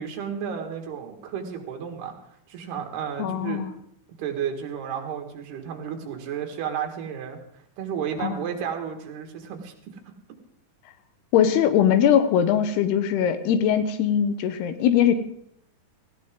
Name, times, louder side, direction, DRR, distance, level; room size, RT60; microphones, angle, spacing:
voice 1, 0.0-2.1 2.5-3.7 4.2-7.4 7.8-9.7, right 8 dB, 75° right, 4 dB, 3.7 m, -32 dB
voice 2, 3.2-3.7 8.2-8.4 11.3-15.1, left 9 dB, 75° left, 10 dB, 2.9 m, -21 dB
18.0 x 15.5 x 3.7 m, 0.71 s
omnidirectional pair, 4.8 m